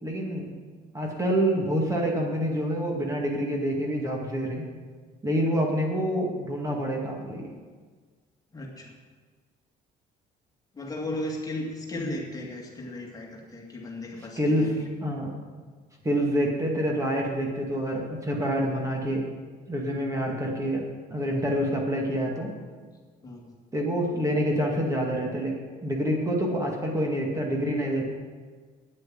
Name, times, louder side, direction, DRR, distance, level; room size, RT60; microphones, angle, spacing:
voice 1, 0.0-0.5 0.9-4.6 5.2-7.5 14.4-15.3 16.0-19.3 19.7-22.5 23.7-25.5 25.8-28.2, equal, 20° right, 0 dB, 2.1 m, -27 dB
voice 2, 8.5-9.0 10.7-14.7 23.2-23.5, left 1 dB, 20° left, -1 dB, 2.1 m, -35 dB
9.4 x 7.7 x 7.7 m, 1.5 s
cardioid pair, 110°, 17 cm